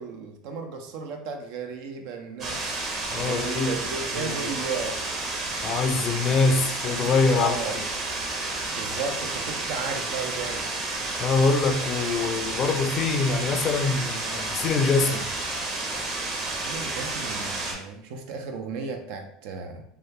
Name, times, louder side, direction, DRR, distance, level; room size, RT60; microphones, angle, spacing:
voice 1, 0.0-2.8 3.1-5.0 7.4-7.8 8.8-10.9 16.4-19.8, right 5 dB, 65° right, 0.5 m, -34 dB
sound 1, 2.4-17.7, right 2 dB, 45° right, 1.0 m, -31 dB
voice 2, 3.1-3.7 4.1-4.5 5.6-7.6 11.2-15.3, left 4 dB, 45° left, 0.5 m, -24 dB
3.1 x 2.3 x 3.1 m
hypercardioid pair, 80°, 0 cm